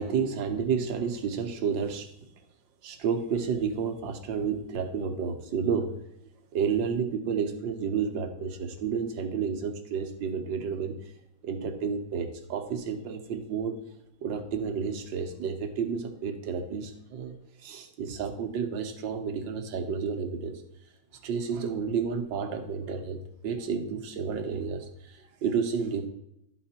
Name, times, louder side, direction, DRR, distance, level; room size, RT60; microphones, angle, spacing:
voice 1, 0.0-2.1 2.8-5.9 6.5-10.9 11.4-13.8 14.2-17.3 17.6-20.6 21.2-26.1, right 6 dB, 85° right, 6 dB, 1.7 m, -31 dB
11.5 x 4.9 x 4.3 m, 0.80 s
omnidirectional pair, 2.0 m